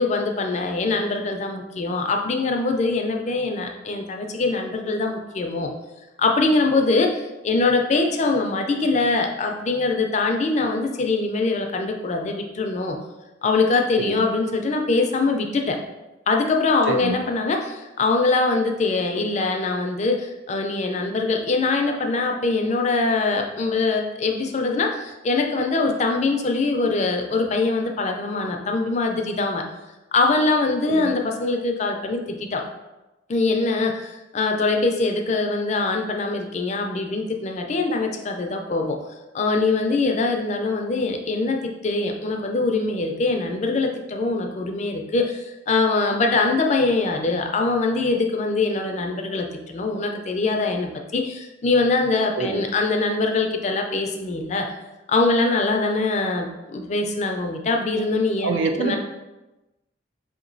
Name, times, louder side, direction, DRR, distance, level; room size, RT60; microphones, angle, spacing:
voice 1, 0.0-5.7 6.2-7.2 7.4-13.0 13.4-15.8 16.3-29.6 30.1-32.6 33.3-39.0 39.3-54.7 55.1-59.0, left 3 dB, 35° left, 3 dB, 0.4 m, -23 dB
voice 2, 58.4-59.0, right 4 dB, 85° right, 6 dB, 0.5 m, -25 dB
4.8 x 2.9 x 2.6 m, 1.0 s
head